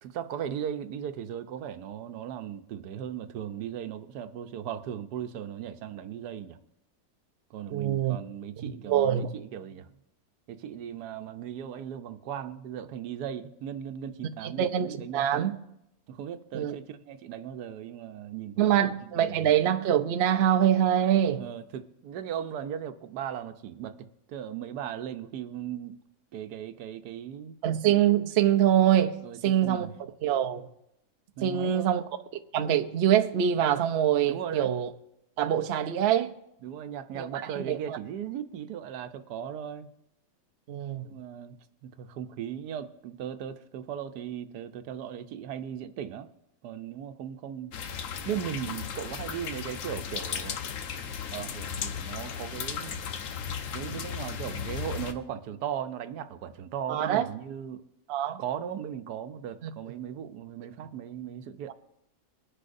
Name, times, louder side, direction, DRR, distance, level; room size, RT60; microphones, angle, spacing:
voice 1, 0.0-6.6 7.5-9.9 10.5-15.4 16.1-19.4 21.4-26.0 26.3-27.6 29.2-29.9 31.4-32.0 34.2-34.7 36.6-39.9 41.0-41.6 41.8-46.3 46.6-47.7 48.3-50.6 51.3-53.0 53.7-57.8 58.4-61.7, right 9 dB, 85° right, 1.3 m, -37 dB
voice 2, 7.7-8.2 8.6-9.3 14.4-15.5 16.5-16.7 18.6-21.5 27.6-29.9 30.2-30.7 31.4-32.0 32.5-34.9 35.4-36.3 37.1-38.0 40.7-41.1 56.9-57.3 58.1-58.4 59.6-59.7, right 10 dB, 55° right, 0.7 m, -25 dB
sound 1, 47.7-55.1, left 7 dB, 60° left, 1.0 m, -36 dB
22.0 x 10.0 x 2.6 m
omnidirectional pair, 1.7 m